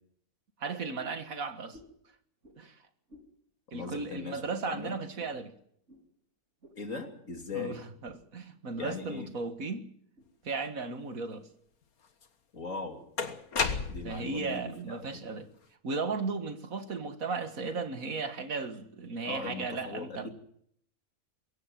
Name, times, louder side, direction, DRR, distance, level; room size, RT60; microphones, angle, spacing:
voice 1, 0.6-1.8 2.6-2.7 3.7-5.5 7.5-9.8 10.4-11.5 14.0-15.5 15.8-20.3, right 4 dB, 70° right, 2.2 m, -35 dB
sound 1, 1.0-1.3 1.7-2.0 2.4-2.6 3.1-3.3 3.7-4.0 4.5-4.7 5.2-5.4 5.9-6.0 6.6-6.8 7.3-7.5 8.0-8.2 8.5-8.9 9.4-9.5 10.2-10.3, left 1 dB, 55° right, 5.0 m, -55 dB
voice 2, 3.7-4.4 4.7-5.0 6.8-7.8 8.8-9.3 12.5-13.0 13.9-15.4 19.3-20.3, left 4 dB, 65° left, 3.5 m, -39 dB
sound 2, 12.2-12.3 13.2-14.3, left 5 dB, 85° left, 2.0 m, -31 dB
22.5 x 17.0 x 7.6 m
omnidirectional pair, 1.5 m